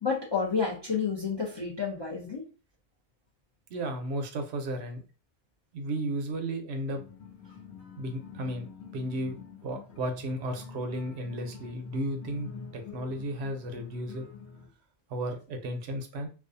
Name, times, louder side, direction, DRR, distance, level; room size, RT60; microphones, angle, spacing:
voice 1, 0.0-2.4, left 5 dB, 35° left, -4 dB, 0.4 m, -30 dB
voice 2, 3.7-5.0 5.7-7.0 8.0-8.7 8.9-9.3 9.6-14.3 15.1-16.3, right 1 dB, 70° right, 4 dB, 0.8 m, -34 dB
sound 1, 6.9-14.7, left 5 dB, 70° left, 0.9 m, -46 dB
2.4 x 2.3 x 2.5 m, 0.35 s
omnidirectional pair, 1.2 m